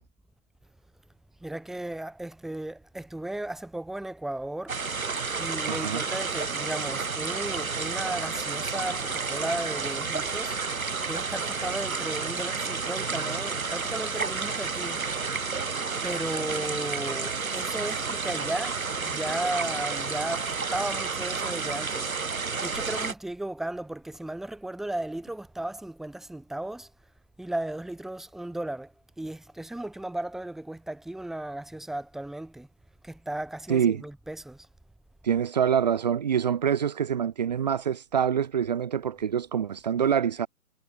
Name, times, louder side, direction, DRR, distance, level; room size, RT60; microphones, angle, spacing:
voice 1, 1.4-4.8 5.4-15.0 16.0-26.9 27.4-32.7 33.0-34.7, right 1 dB, ahead, 5.8 m, -35 dB
sound 1, 4.7-23.1, right 4 dB, 70° right, 3.9 m, -31 dB
voice 2, 5.7-6.0 33.7-34.0 35.2-40.5, right 8 dB, 30° right, 3.7 m, -25 dB
hypercardioid pair, 170°, 43 cm